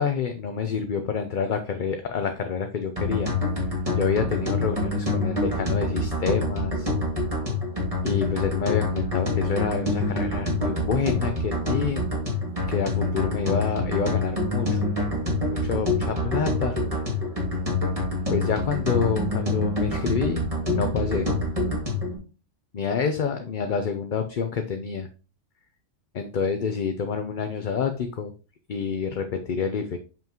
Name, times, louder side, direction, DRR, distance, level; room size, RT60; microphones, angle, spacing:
voice 1, 0.0-3.3 3.6-3.7 4.0-6.9 8.0-12.1 12.7-14.8 15.4-16.8 18.3-20.4 20.7-21.3 22.7-25.1 26.1-28.3 28.7-30.0, left 6 dB, 50° left, 7 dB, 0.7 m, -28 dB
sound 1, 3.0-22.1, left 2 dB, 30° right, 2.2 m, -26 dB
7.1 x 5.9 x 2.9 m, 0.35 s
omnidirectional pair, 1.3 m